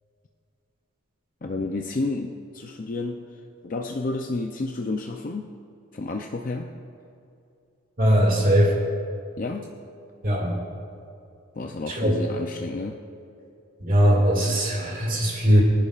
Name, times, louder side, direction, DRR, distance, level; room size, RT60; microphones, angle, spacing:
voice 1, 1.4-3.3 3.6-5.6 5.9-6.8 9.4-9.8 11.6-13.0, left 2 dB, 40° left, 3 dB, 0.5 m, -31 dB
voice 2, 8.0-8.7 10.2-10.6 11.9-12.2 13.8-15.6, equal, 40° right, -3 dB, 2.3 m, -20 dB
24.5 x 10.5 x 2.5 m, 2.6 s
head